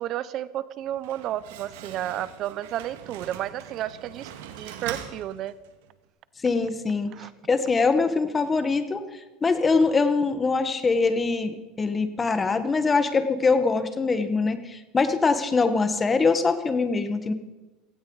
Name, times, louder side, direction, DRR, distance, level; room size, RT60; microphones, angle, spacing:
voice 1, 0.0-4.3 4.6-5.5 7.1-7.3, right 12 dB, 50° right, 17 dB, 0.5 m, -32 dB
Slam, 0.8-5.9, right 9 dB, 80° right, 1.8 m, -42 dB
voice 2, 6.4-7.1 7.5-9.0 9.4-17.3, left 4 dB, 20° left, 10 dB, 1.4 m, -23 dB
17.0 x 16.5 x 4.0 m, 1.1 s
supercardioid pair, 120°, 0 cm